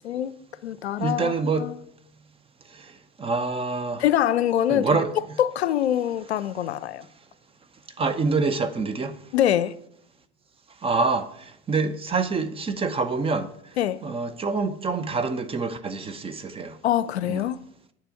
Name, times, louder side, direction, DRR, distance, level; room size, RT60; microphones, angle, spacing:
voice 1, 0.0-0.3 0.6-1.8 4.0-5.0 5.4-7.1 9.3-9.8 13.8-14.0 16.8-17.6, left 11 dB, 75° left, 0.6 m, -24 dB
voice 2, 1.0-1.7 2.8-2.9 3.2-4.0 4.7-5.1 8.0-9.2 10.8-13.5 14.0-16.8 17.2-17.5, right 4 dB, 15° right, 0.7 m, -26 dB
9.0 x 6.8 x 5.7 m
figure-of-eight pair, 85°, 33 cm